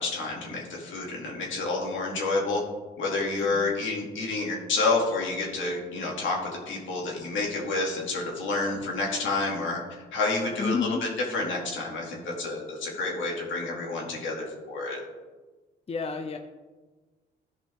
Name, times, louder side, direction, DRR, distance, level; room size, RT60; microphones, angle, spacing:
voice 1, 0.0-2.6 3.0-9.8 10.1-15.0, left 3 dB, 75° left, -2 dB, 2.5 m, -29 dB
voice 2, 10.6-11.1 15.9-16.4, left 5 dB, 30° left, 5 dB, 0.7 m, -30 dB
13.5 x 5.3 x 3.6 m, 1.3 s
cardioid pair, 90°, 20 cm